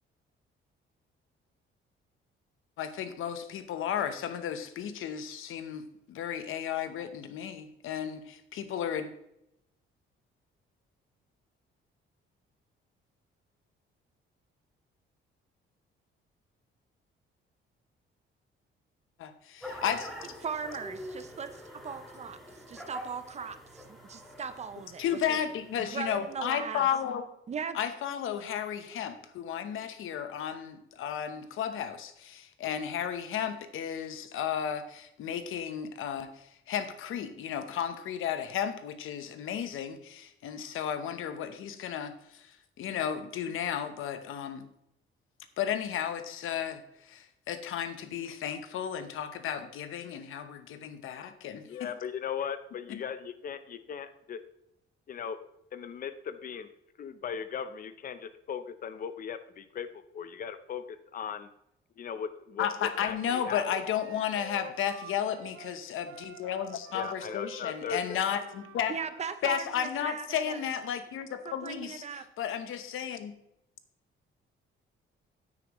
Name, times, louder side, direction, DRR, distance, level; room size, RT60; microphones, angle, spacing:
voice 1, 2.8-9.1 19.2-20.1 25.0-27.2 27.7-44.7 45.6-51.9 52.9-53.0 62.6-68.9 69.4-72.0 72.4-73.3, left 9 dB, 75° left, 10 dB, 1.0 m, -33 dB
sound 1, 19.6-26.6, equal, ahead, 1.7 m, -46 dB
voice 2, 20.4-25.4 25.8-26.8 27.5-27.8 68.9-70.6 71.4-72.3, right 6 dB, 30° right, 11 dB, 0.6 m, -38 dB
voice 3, 51.6-54.4 55.1-55.4 55.7-56.7 57.0-61.5 62.0-63.6 66.9-68.2, left 7 dB, 45° left, 11 dB, 0.7 m, -38 dB
Wind instrument woodwind instrument, 62.7-69.3, right 6 dB, 80° right, 1.0 m, -49 dB
9.7 x 8.9 x 3.1 m, 0.81 s
cardioid pair, 145°, 21 cm